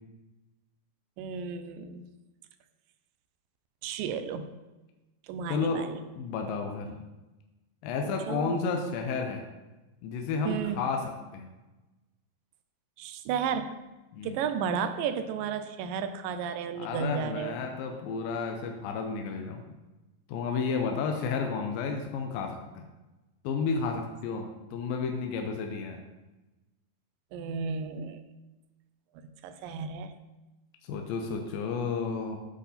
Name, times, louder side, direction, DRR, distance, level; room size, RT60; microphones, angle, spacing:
voice 1, 1.2-2.0 3.8-4.5 5.3-6.0 8.3-8.6 10.5-10.8 13.0-13.8 14.2-17.6 27.3-28.2 29.2-30.1, right 7 dB, 80° right, 10 dB, 2.3 m, -33 dB
voice 2, 5.5-7.0 7.8-9.4 10.0-11.5 14.1-14.4 16.7-19.7 20.3-22.8 23.4-26.0 30.8-32.4, left 5 dB, 85° left, 3 dB, 2.5 m, -32 dB
8.4 x 8.3 x 4.2 m, 1.1 s
omnidirectional pair, 4.0 m